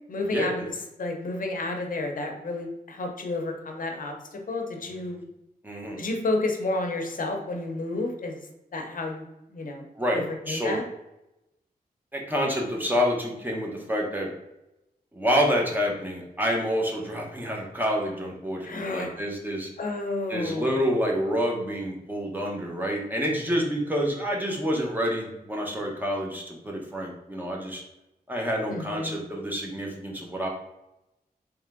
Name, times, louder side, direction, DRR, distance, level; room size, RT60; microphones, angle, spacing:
voice 1, 0.1-0.7 1.0-5.2 6.0-8.4 8.7-9.2 9.5-9.8 10.1-10.8 18.6-19.2 19.8-20.7 28.7-29.2, left 2 dB, 60° left, 3 dB, 0.7 m, -31 dB
voice 2, 5.6-6.0 10.0-10.8 12.1-14.3 15.1-19.7 20.3-27.8 28.3-30.5, equal, 10° right, -1 dB, 0.9 m, -28 dB
3.6 x 3.2 x 3.5 m, 0.91 s
wide cardioid pair, 130°, 16 cm